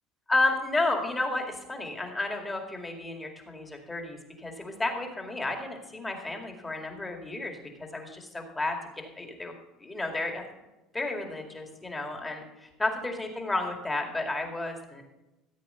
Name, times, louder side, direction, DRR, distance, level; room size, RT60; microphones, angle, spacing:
voice 1, 0.3-8.8 9.2-9.5 9.8-10.4 10.9-15.0, left 2 dB, 10° left, 3 dB, 2.2 m, -32 dB
14.5 x 8.2 x 5.6 m, 0.99 s
cardioid pair, 125°, 0 cm